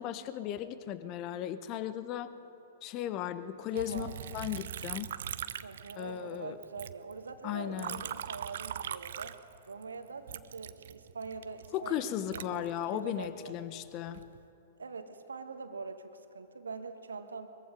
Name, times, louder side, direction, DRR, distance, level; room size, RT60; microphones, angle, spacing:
voice 1, 0.0-2.3 2.8-4.1 4.3-5.2 6.0-6.6 7.4-8.0 11.7-14.2, left 11 dB, 35° left, 13 dB, 1.0 m, -36 dB
voice 2, 3.7-4.1 5.6-9.4 9.7-13.6 14.8-17.5, right 4 dB, 70° right, 7 dB, 1.6 m, -43 dB
Liquid, 3.8-6.4 6.6-9.8 10.3-13.3 13.9-14.4, right 9 dB, 55° right, 0.7 m, -41 dB
23.0 x 22.5 x 5.1 m, 2.8 s
figure-of-eight pair, 105°, 0 cm